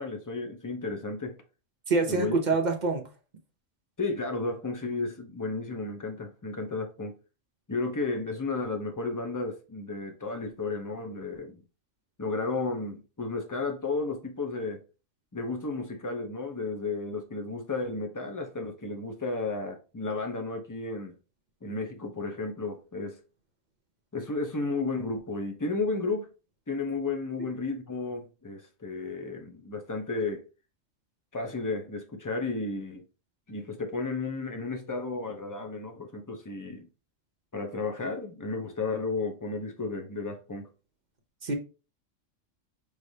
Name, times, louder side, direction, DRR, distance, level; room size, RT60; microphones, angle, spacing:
voice 1, 0.0-1.3 2.1-2.4 4.0-7.2 7.7-11.6 12.2-14.8 15.3-21.1 21.6-23.2 24.1-26.3 26.7-30.4 31.3-33.0 33.5-36.9 37.5-40.7, left 3 dB, 30° left, 0.4 m, -33 dB
voice 2, 1.9-3.0 41.4-41.5, right 3 dB, 45° right, 0.6 m, -25 dB
5.1 x 3.2 x 2.7 m
omnidirectional pair, 1.4 m